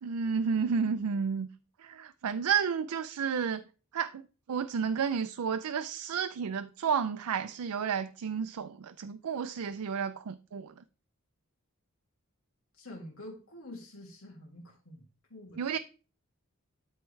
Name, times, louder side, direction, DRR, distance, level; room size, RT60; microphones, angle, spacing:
voice 1, 0.0-1.5 1.8-3.6 3.9-4.2 4.5-10.7 15.6-15.8, right 6 dB, 90° right, 0.4 m, -31 dB
voice 2, 12.7-15.0 15.3-15.6, left 1 dB, 70° left, 2.3 m, -47 dB
13.0 x 4.4 x 3.2 m
head